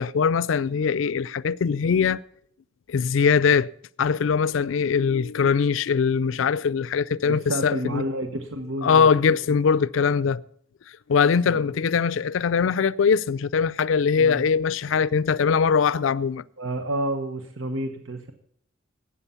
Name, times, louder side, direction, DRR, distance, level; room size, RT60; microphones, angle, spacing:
voice 1, 0.0-2.2 2.9-3.7 4.0-8.0 8.8-10.4 11.1-16.4, left 6 dB, 80° left, 0.4 m, -21 dB
voice 2, 7.2-9.4 11.5-11.7 14.2-14.4 14.8-15.0 16.6-18.3, right 1 dB, 90° right, 1.0 m, -30 dB
13.0 x 8.6 x 6.9 m
head